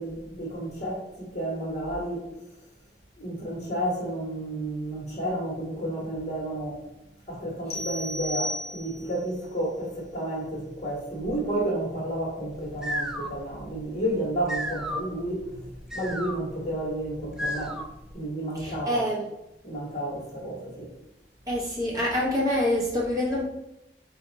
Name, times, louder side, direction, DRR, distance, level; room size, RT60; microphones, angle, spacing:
voice 1, 0.0-2.3 3.2-6.8 7.3-17.8 18.1-19.0 19.6-20.9, right 1 dB, 40° left, 1.4 m, -31 dB
sound 1, 7.7-9.2, left 1 dB, 65° left, 0.6 m, -34 dB
sound 2, 12.5-18.1, equal, 5° right, 0.3 m, -35 dB
voice 2, 18.5-19.2 21.5-23.5, left 1 dB, 20° right, 1.0 m, -26 dB
4.2 x 2.7 x 4.0 m
head